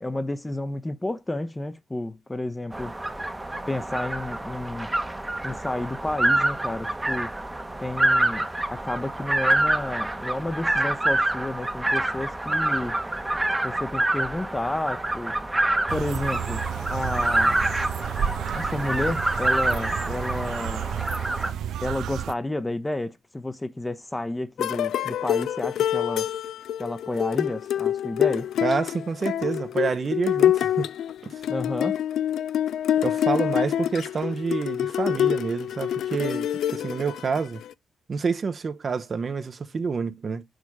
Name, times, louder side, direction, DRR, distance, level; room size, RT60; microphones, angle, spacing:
voice 1, 0.0-3.0 3.7-4.9 5.4-7.3 7.8-13.0 13.6-15.4 15.9-17.6 18.5-20.9 21.8-26.3 26.8-28.5 31.5-32.0, left 1 dB, 15° left, 0.7 m, -31 dB
sound 1, 2.7-21.5, right 1 dB, 15° right, 0.9 m, -26 dB
sound 2, 15.9-22.3, right 9 dB, 80° right, 0.4 m, -31 dB
sound 3, 24.6-37.7, left 10 dB, 75° left, 0.3 m, -26 dB
voice 2, 28.6-30.9 31.2-31.4 33.0-36.5 36.7-37.6 38.1-40.4, right 5 dB, 45° right, 0.7 m, -28 dB
6.4 x 3.5 x 4.7 m
cardioid pair, 70°, 0 cm